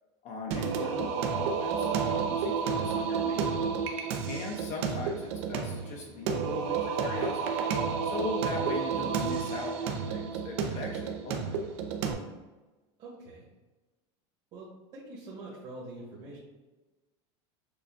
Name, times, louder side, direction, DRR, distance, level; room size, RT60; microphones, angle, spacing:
voice 1, 0.2-3.7 4.3-7.6 8.0-11.7, left 3 dB, 50° left, 0 dB, 0.7 m, -39 dB
Singing, 0.5-12.1, right 6 dB, 75° right, 0.6 m, -31 dB
voice 2, 13.0-13.5 14.5-16.4, right 2 dB, 45° right, -7 dB, 1.3 m, -45 dB
6.7 x 2.3 x 2.5 m, 1.2 s
supercardioid pair, 130°, 15 cm